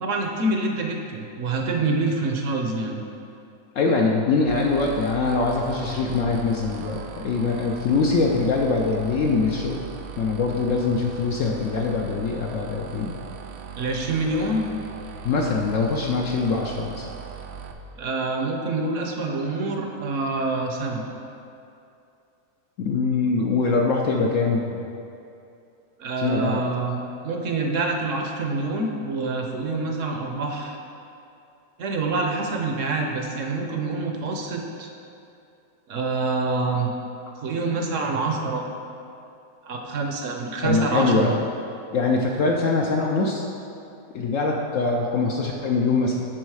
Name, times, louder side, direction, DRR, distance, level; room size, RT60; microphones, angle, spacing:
voice 1, 0.0-3.0 13.8-14.6 18.0-21.0 26.0-30.8 31.8-34.9 35.9-36.9 37.4-38.6 39.6-41.3, right 3 dB, 60° right, 2 dB, 1.0 m, -26 dB
voice 2, 3.7-9.8 10.2-13.1 15.2-17.1 22.8-24.8 26.2-26.6 40.6-41.4 41.9-43.5 44.1-46.2, left 4 dB, 65° left, 0 dB, 0.8 m, -23 dB
sound 1, 4.4-17.7, right 5 dB, 85° right, 0.5 m, -39 dB
11.0 x 4.0 x 4.7 m, 2.6 s
omnidirectional pair, 1.8 m